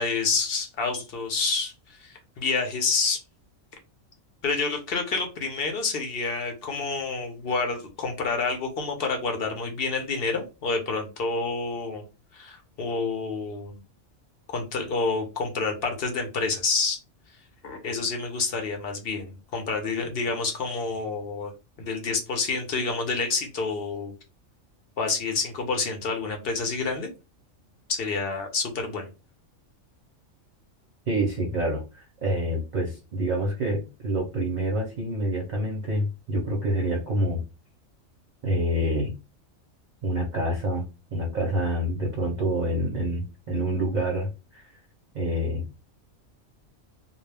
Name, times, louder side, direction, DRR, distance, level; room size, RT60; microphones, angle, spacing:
voice 1, 0.0-1.7 2.0-3.2 4.4-12.1 12.3-13.7 14.5-17.0 17.6-21.5 21.8-24.1 25.0-27.1 27.9-29.1, left 4 dB, 55° left, 4 dB, 0.8 m, -28 dB
voice 2, 31.1-37.4 38.4-39.1 40.0-40.8 41.1-44.7 45.1-45.7, equal, 45° right, 0 dB, 0.6 m, -27 dB
2.3 x 2.0 x 3.2 m, 0.29 s
omnidirectional pair, 1.3 m